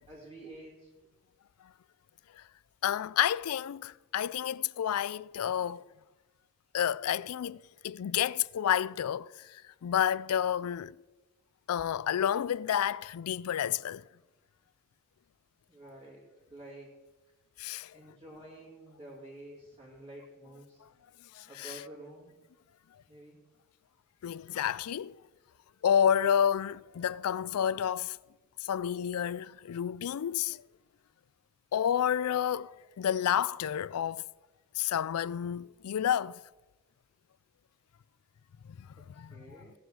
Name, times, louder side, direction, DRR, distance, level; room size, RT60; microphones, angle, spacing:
voice 1, 0.1-0.9 15.7-16.9 17.9-20.8 21.5-22.3 23.1-23.4 39.1-39.7, right 1 dB, 20° right, 2.6 m, -49 dB
voice 2, 2.8-5.8 6.7-9.3 9.8-10.9 11.7-14.0 17.6-17.9 21.4-21.7 24.2-25.2 25.8-28.2 28.6-30.6 31.7-34.2 34.8-36.4 39.2-39.6, left 9 dB, 80° left, 0.3 m, -30 dB
17.0 x 7.9 x 6.2 m
head